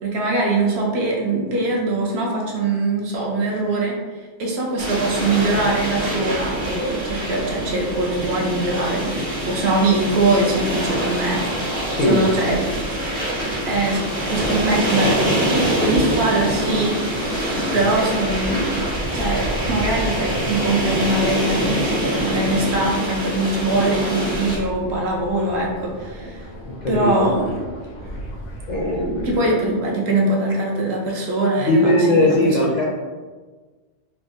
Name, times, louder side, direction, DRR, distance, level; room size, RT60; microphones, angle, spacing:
voice 1, 0.0-4.0 4.4-11.4 12.0-12.6 13.6-17.0 17.2-17.3 17.7-18.7 19.1-26.5 26.9-27.6 29.2-32.8, right 2 dB, 65° right, -2 dB, 0.8 m, -22 dB
sound 1, 4.8-24.6, right 1 dB, 35° right, 0.7 m, -25 dB
sound 2, 11.7-29.4, left 1 dB, 85° left, 1.0 m, -37 dB
voice 2, 11.9-12.7 15.9-16.6 26.6-27.3 28.7-29.6 31.6-32.8, left 1 dB, 55° left, -6 dB, 0.5 m, -20 dB
3.3 x 2.0 x 2.6 m, 1.4 s
omnidirectional pair, 1.2 m